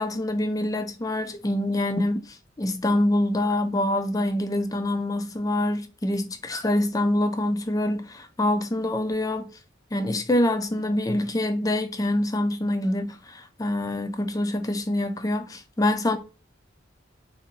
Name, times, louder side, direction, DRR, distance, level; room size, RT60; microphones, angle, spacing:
voice 1, 0.0-2.2 2.6-9.5 9.9-16.2, left 1 dB, 20° left, 0.4 m, -25 dB
2.8 x 2.7 x 3.9 m
head